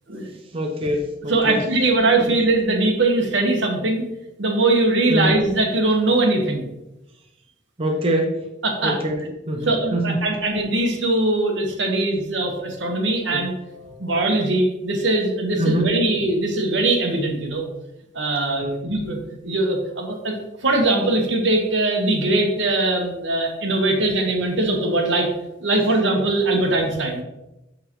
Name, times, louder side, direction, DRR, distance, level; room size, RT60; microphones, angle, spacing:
voice 1, 0.5-1.6 2.2-2.3 5.1-5.3 7.8-8.4 8.8-10.2 13.3-13.5 15.6-15.9 18.6-18.8, right 1 dB, 30° right, 2 dB, 0.5 m, -24 dB
voice 2, 1.3-4.0 4.4-6.7 8.6-9.0 9.6-17.6 18.1-19.2 19.4-25.3 25.6-27.2, right 2 dB, 80° right, 2 dB, 1.3 m, -21 dB
6.6 x 6.4 x 3.1 m, 0.94 s
head